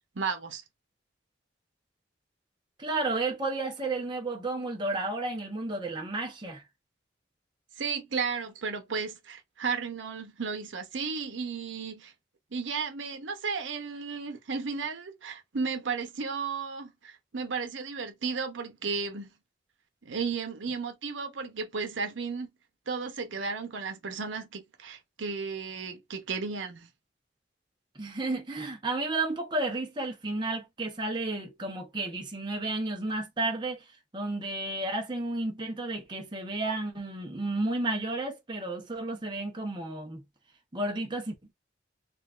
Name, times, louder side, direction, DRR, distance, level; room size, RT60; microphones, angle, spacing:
voice 1, 0.1-0.6 7.8-12.1 12.5-19.3 20.0-22.5 22.9-26.9, right 5 dB, 85° right, 0.7 m, -34 dB
voice 2, 2.8-6.6 27.9-33.8 34.1-40.2 40.7-41.5, right 2 dB, 25° right, 0.8 m, -32 dB
3.9 x 2.4 x 2.4 m
head